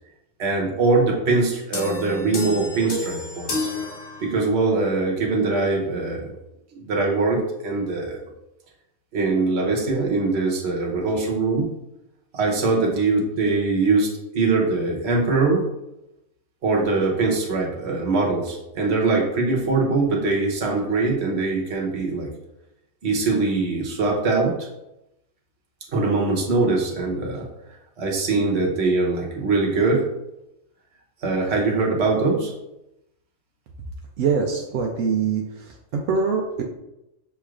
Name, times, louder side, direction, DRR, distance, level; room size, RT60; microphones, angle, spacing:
voice 1, 0.4-3.7 4.2-6.3 6.7-8.2 9.1-11.7 12.3-15.6 16.6-22.3 23.0-24.7 25.9-27.5 28.0-30.1 31.2-32.5, right 3 dB, 60° right, -1 dB, 1.2 m, -22 dB
sound 1, 1.7-4.7, left 2 dB, 50° left, 0.8 m, -30 dB
voice 2, 34.2-36.6, right 5 dB, 85° right, 0 dB, 0.9 m, -24 dB
6.6 x 3.1 x 2.4 m, 0.90 s
omnidirectional pair, 1.3 m